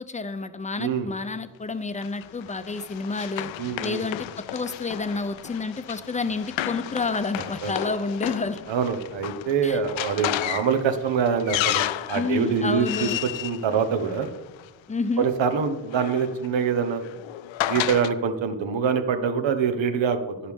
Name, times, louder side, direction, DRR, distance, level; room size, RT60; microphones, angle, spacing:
voice 1, 0.0-3.5 3.8-4.3 4.5-8.6 9.6-9.8 12.1-13.2 14.9-15.3, left 3 dB, 15° left, 11 dB, 0.6 m, -29 dB
voice 2, 0.8-1.1 3.6-4.0 7.6-7.7 8.7-14.3 15.2-17.0 17.6-20.5, right 6 dB, 80° right, 8 dB, 1.2 m, -25 dB
Run, 2.0-14.6 15.6-18.1, left 14 dB, 85° left, 0.6 m, -33 dB
11.0 x 10.5 x 3.6 m, 1.1 s
cardioid pair, 115°, 44 cm